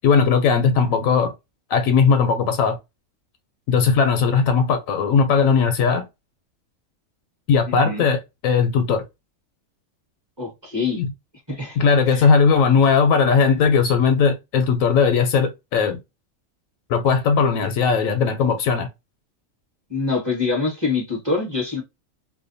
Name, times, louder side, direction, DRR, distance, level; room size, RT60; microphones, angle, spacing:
voice 1, 0.0-1.3 1.7-2.8 3.7-6.1 7.5-9.0 11.0-11.1 11.8-16.0 16.9-18.9, left 5 dB, 75° left, 1.0 m, -18 dB
voice 2, 7.7-8.0 10.4-11.0 11.5-11.8 12.1-12.3 19.9-21.8, left 4 dB, 20° right, 1.1 m, -25 dB
2.7 x 2.2 x 2.5 m
omnidirectional pair, 1.5 m